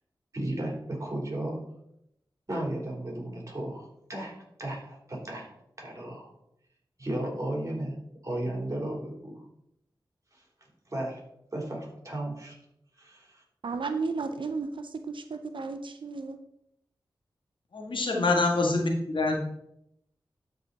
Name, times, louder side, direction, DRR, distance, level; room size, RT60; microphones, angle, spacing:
voice 1, 0.3-1.6 2.5-6.3 7.0-7.9 8.2-9.4 10.9-11.2 11.5-12.5 13.0-13.4, right 1 dB, 40° right, -1 dB, 3.4 m, -34 dB
voice 2, 13.6-16.4 18.2-18.3, right 4 dB, 75° right, 8 dB, 0.6 m, -33 dB
voice 3, 17.7-19.4, left 3 dB, 75° left, 1 dB, 1.7 m, -25 dB
12.0 x 4.9 x 4.0 m, 0.79 s
wide cardioid pair, 55°, 8 cm